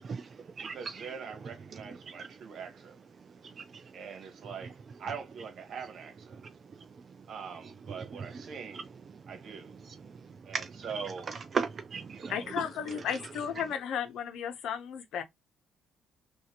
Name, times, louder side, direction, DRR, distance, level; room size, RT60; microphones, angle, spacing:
voice 1, 0.1-1.1 2.2-2.3 3.4-3.9 10.2-10.7 11.5-12.3, right 5 dB, 40° right, 0.4 m, -36 dB
voice 2, 0.6-3.0 3.9-6.4 7.3-8.9 9.3-9.7 10.4-11.3 12.1-13.1, right 6 dB, 60° right, 1.4 m, -43 dB
voice 3, 12.3-15.2, left 8 dB, 75° left, 0.8 m, -34 dB
3.3 x 2.6 x 2.9 m
cardioid pair, 100°, 0 cm